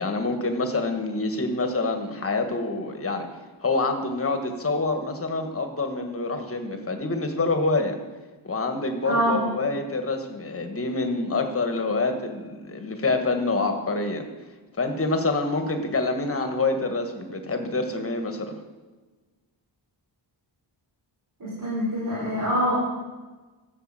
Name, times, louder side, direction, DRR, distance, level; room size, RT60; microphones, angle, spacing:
voice 1, 0.0-3.3 3.6-8.0 8.4-14.2 14.8-18.6, left 3 dB, 30° left, 5 dB, 1.4 m, -26 dB
voice 2, 9.0-9.4 21.4-22.8, equal, 40° right, -8 dB, 4.7 m, -25 dB
13.5 x 7.1 x 7.5 m, 1.3 s
wide cardioid pair, 175°, 48 cm